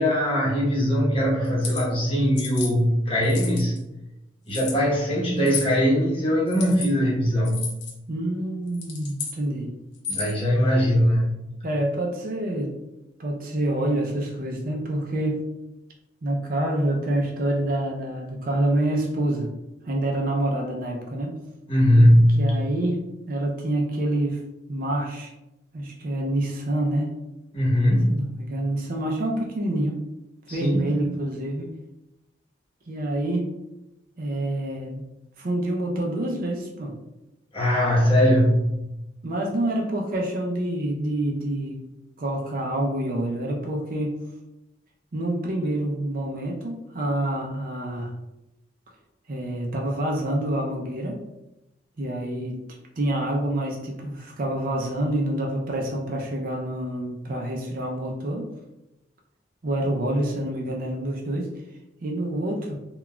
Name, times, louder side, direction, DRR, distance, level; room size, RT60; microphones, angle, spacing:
voice 1, 0.0-3.7 4.5-7.7 10.1-11.3 21.7-22.6 27.5-28.3 30.5-31.1 37.5-38.8, equal, 30° left, -6 dB, 0.9 m, -20 dB
sound 1, 1.4-1.8 2.4-2.7 3.2-3.8 4.5-4.8 5.4-5.7 6.5-6.9 7.4-7.9 8.7-9.4 9.9-10.4, left 6 dB, 60° left, 0.7 m, -33 dB
voice 2, 8.1-9.7 11.6-12.7 13.2-15.5 16.2-19.5 19.8-21.4 22.4-24.4 24.7-25.3 25.7-27.1 28.1-30.0 30.5-31.7 32.9-33.5 34.2-35.0 35.4-36.9 39.2-41.8 42.2-44.2 45.1-48.1 49.3-51.2 52.0-52.6 53.0-58.5 59.6-61.5 62.0-62.8, right 1 dB, 45° right, 0 dB, 0.4 m, -27 dB
3.8 x 2.3 x 2.2 m, 0.93 s
head